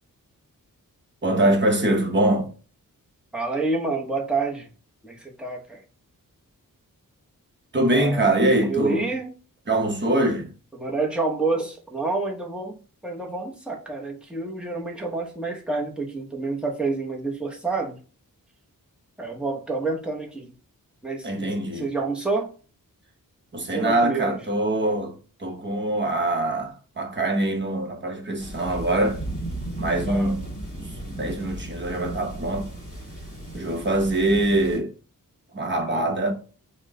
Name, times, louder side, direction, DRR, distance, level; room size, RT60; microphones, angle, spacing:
voice 1, 1.2-2.5 7.7-9.1 9.7-10.5 21.2-21.8 23.5-25.1 25.4-29.2 29.8-30.5 30.8-32.7 33.5-34.9 35.5-36.3, right 1 dB, 35° right, 0.9 m, -23 dB
voice 2, 3.3-4.7 5.0-5.8 7.9-8.2 8.7-9.3 10.7-18.0 19.2-20.5 21.0-21.5 21.8-22.5 23.7-24.4 30.0-30.3 35.9-36.1, right 3 dB, 5° right, 0.8 m, -28 dB
sound 1, 28.4-34.8, right 1 dB, 20° left, 1.9 m, -35 dB
4.3 x 2.2 x 3.6 m
wide cardioid pair, 115°, 34 cm